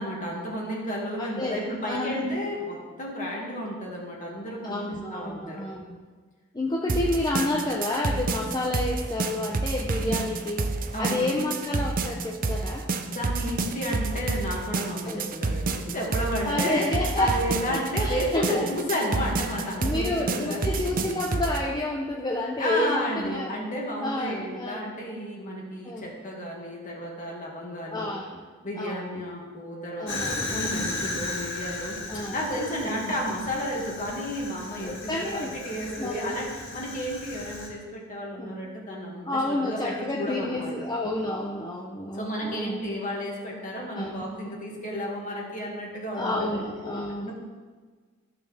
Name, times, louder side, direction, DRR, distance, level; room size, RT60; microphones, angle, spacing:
voice 1, 0.0-5.6 10.0-10.3 10.9-11.4 13.1-20.8 22.6-28.1 28.6-32.0 32.3-40.7 42.1-46.6 47.2-47.3, equal, 40° left, -2 dB, 2.1 m, -32 dB
voice 2, 1.2-2.3 4.6-6.0 6.5-10.7 11.0-12.9 15.0-15.3 16.4-18.7 19.8-23.5 24.0-24.8 25.8-26.1 27.9-28.5 28.8-29.2 30.0-30.9 32.1-32.4 32.8-33.2 34.8-35.6 36.0-36.3 38.3-38.6 39.3-42.9 43.9-44.3 46.1-47.3, left 1 dB, 20° left, 0 dB, 0.7 m, -30 dB
sound 1, 6.9-21.6, right 3 dB, 40° right, 0.6 m, -29 dB
Fire, 30.1-37.7, left 2 dB, 60° left, 1.9 m, -35 dB
14.5 x 6.5 x 3.4 m, 1.5 s
head